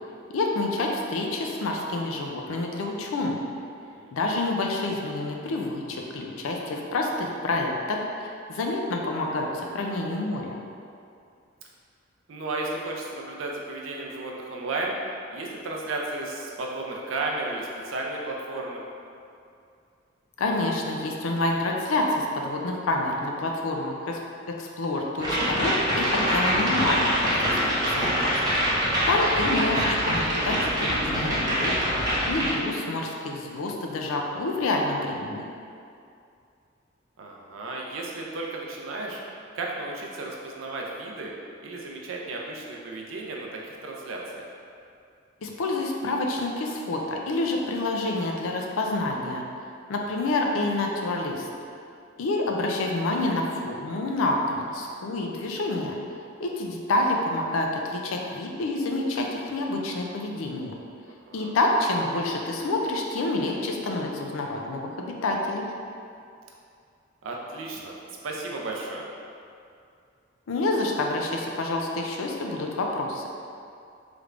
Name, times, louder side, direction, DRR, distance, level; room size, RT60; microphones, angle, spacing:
voice 1, 0.3-3.4 4.1-10.5 20.4-24.2 24.5-27.6 27.9-28.1 29.1-31.7 32.3-35.4 45.4-49.4 49.9-51.5 52.2-56.0 56.4-60.7 61.3-65.7 70.5-73.2, left 2 dB, 80° left, 1 dB, 0.4 m, -28 dB
voice 2, 12.3-15.0 15.3-18.8 28.8-29.1 37.2-39.2 39.5-41.3 41.6-44.4 61.3-61.5 67.2-67.9 68.2-69.1, right 2 dB, 70° right, -1 dB, 0.5 m, -34 dB
sound 1, 25.2-32.5, equal, 20° right, 0.5 m, -24 dB
3.3 x 3.2 x 2.4 m, 2.5 s
head